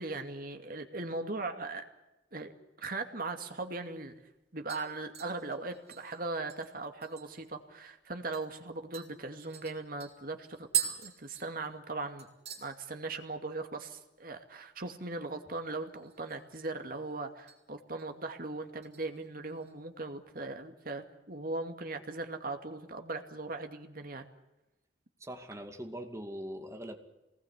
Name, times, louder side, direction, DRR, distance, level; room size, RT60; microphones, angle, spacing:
voice 1, 0.0-1.8 2.3-2.5 2.8-4.1 4.5-12.3 12.6-24.3, right 3 dB, 50° right, 5 dB, 2.4 m, -39 dB
sound 1, 3.7-3.8 4.1-4.4 4.7-7.5 7.9-8.0 8.3-8.5 8.9-11.9 12.2-12.7 13.0-13.4 13.7-13.8 15.9-16.5 16.9-17.6 18.0-18.3 18.8-19.7 20.1-20.2, right 10 dB, 35° right, 6.3 m, -40 dB
voice 2, 25.2-27.0, equal, 15° right, 5 dB, 2.3 m, -41 dB
25.0 x 20.0 x 8.3 m, 1.0 s
head